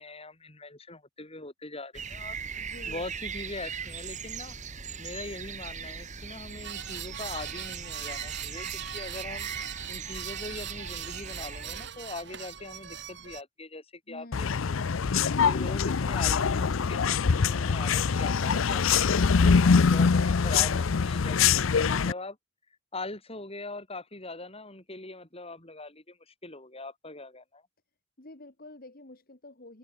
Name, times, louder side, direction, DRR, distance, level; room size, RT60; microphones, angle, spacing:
voice 1, 0.0-4.6 5.0-9.6 9.9-14.5 15.4-22.4 22.9-27.6, left 2 dB, 30° left, 6.1 m, -41 dB
sound 1, 1.9-11.9, right 6 dB, 35° right, 1.9 m, -39 dB
voice 2, 2.5-3.1 14.1-14.7 28.2-29.8, left 2 dB, 45° left, 2.2 m, -49 dB
sound 2, 6.6-13.4, right 9 dB, 60° right, 3.5 m, -40 dB
sound 3, 14.3-22.1, left 5 dB, 85° left, 0.6 m, -24 dB
head